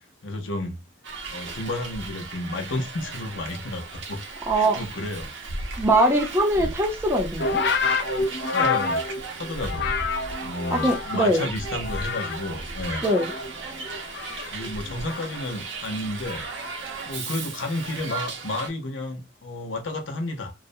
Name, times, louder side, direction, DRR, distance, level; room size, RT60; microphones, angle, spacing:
voice 1, 0.2-0.8 1.3-4.2 4.5-5.3 6.6-6.8 8.5-9.0 9.4-9.9 10.4-13.1 14.5-16.5 17.0-20.5, left 2 dB, 90° left, 0.7 m, -31 dB
Hiss, 1.0-18.7, right 3 dB, 80° right, 0.6 m, -36 dB
voice 2, 4.5-4.8 5.8-7.6 10.7-11.5 13.0-13.3, right 1 dB, 15° right, 0.5 m, -22 dB
sound 1, 7.4-11.3 11.6-12.5 12.8-15.5 16.3-16.7, left 4 dB, 60° left, 0.4 m, -28 dB
2.4 x 2.0 x 2.6 m
head